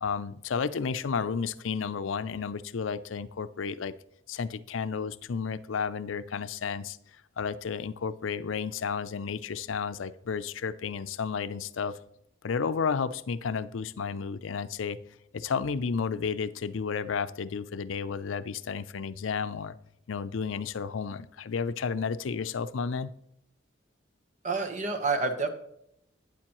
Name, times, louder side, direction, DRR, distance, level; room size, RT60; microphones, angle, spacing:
voice 1, 0.0-3.9 4.3-7.0 7.4-12.0 12.4-15.0 15.3-19.7 20.1-23.1, left 6 dB, 85° left, 13 dB, 0.5 m, -32 dB
voice 2, 24.4-25.5, right 4 dB, 40° right, 6 dB, 1.1 m, -28 dB
12.0 x 9.2 x 3.0 m, 0.75 s
head